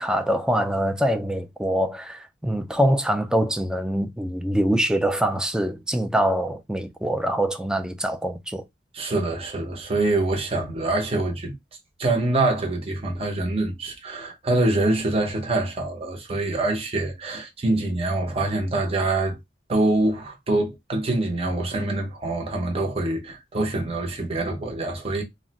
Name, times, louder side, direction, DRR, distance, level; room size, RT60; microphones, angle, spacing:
voice 1, 0.0-8.6, equal, 5° right, 0.3 m, -24 dB
voice 2, 8.9-11.5 12.0-19.4 19.7-25.2, right 2 dB, 30° right, 0.7 m, -25 dB
2.4 x 2.0 x 3.9 m
head